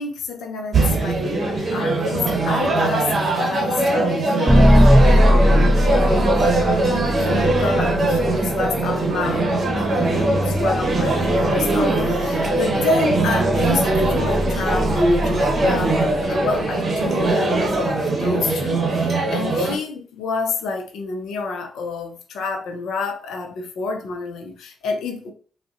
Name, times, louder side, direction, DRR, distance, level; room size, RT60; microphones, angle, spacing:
voice 1, 0.0-25.3, left 3 dB, 75° left, 5 dB, 0.5 m, -29 dB
sound 1, 0.7-19.8, right 2 dB, 55° right, 0.8 m, -21 dB
sound 2, 4.5-16.6, equal, 15° right, 0.6 m, -21 dB
3.7 x 2.1 x 2.4 m, 0.41 s
hypercardioid pair, 40°, 0 cm